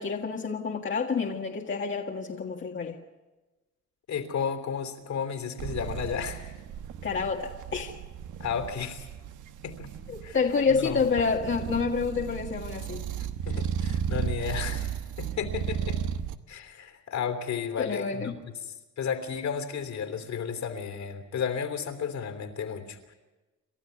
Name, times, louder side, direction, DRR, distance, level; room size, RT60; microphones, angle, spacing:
voice 1, 0.0-3.0 7.0-8.0 10.1-13.1 17.8-18.4, left 5 dB, 40° left, 0 dB, 1.8 m, -28 dB
voice 2, 4.1-6.5 8.4-9.1 9.6-9.9 10.2-10.4 10.7-11.0 13.2-16.0 16.5-23.1, left 7 dB, 65° left, 6 dB, 3.3 m, -33 dB
sound 1, 5.6-16.4, right 8 dB, 80° right, 1.2 m, -34 dB
29.0 x 13.0 x 9.4 m, 1.2 s
cardioid pair, 90°, 30 cm